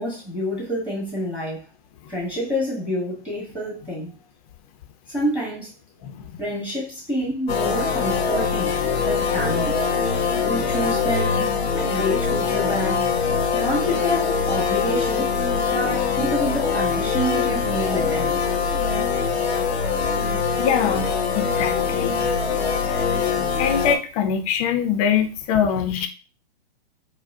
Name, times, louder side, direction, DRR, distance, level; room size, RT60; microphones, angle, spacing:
voice 1, 0.0-1.6 2.1-4.1 5.1-5.7 6.4-8.8 9.1-9.8 10.5-11.5 11.7-13.0 13.5-15.3 15.7-18.4, equal, 5° right, -4 dB, 1.3 m, -27 dB
voice 2, 6.0-6.3 20.6-21.1 21.4-22.2 23.6-26.1, left 8 dB, 35° left, 7 dB, 0.6 m, -23 dB
sound 1, 7.5-24.0, left 5 dB, 90° left, 0.7 m, -23 dB
4.6 x 2.2 x 2.6 m, 0.34 s
hypercardioid pair, 130°, 32 cm